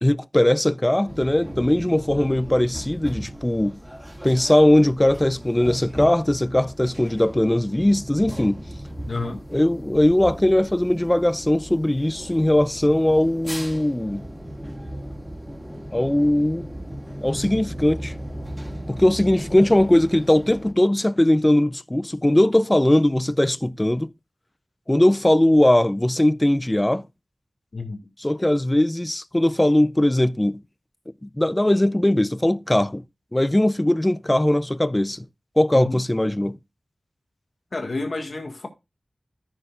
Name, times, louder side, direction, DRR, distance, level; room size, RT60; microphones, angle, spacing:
voice 1, 0.0-3.8 4.2-8.6 9.5-14.3 15.9-16.6 17.2-18.1 18.9-24.1 24.9-27.1 28.2-30.6 31.2-33.0 33.3-35.3 35.6-36.6, left 1 dB, 15° left, 0.4 m, -20 dB
sound 1, 1.1-20.7, equal, 10° right, 1.9 m, -36 dB
voice 2, 9.1-9.4 27.7-28.0 35.7-36.0 37.7-38.7, left 3 dB, 60° left, 1.8 m, -29 dB
14.0 x 6.7 x 2.4 m
wide cardioid pair, 80°, 0 cm